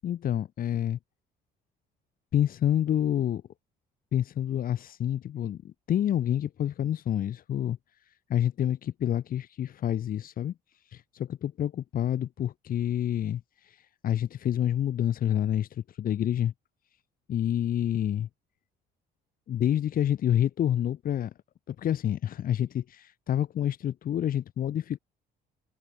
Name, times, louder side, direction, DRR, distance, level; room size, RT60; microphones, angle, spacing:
voice 1, 0.0-1.0 2.3-3.4 4.1-7.8 8.3-10.5 10.9-16.5 17.3-18.3 19.5-21.3 21.7-25.0, left 10 dB, 55° left, 6.8 m, -28 dB
open air
cardioid pair, 110°, 17 cm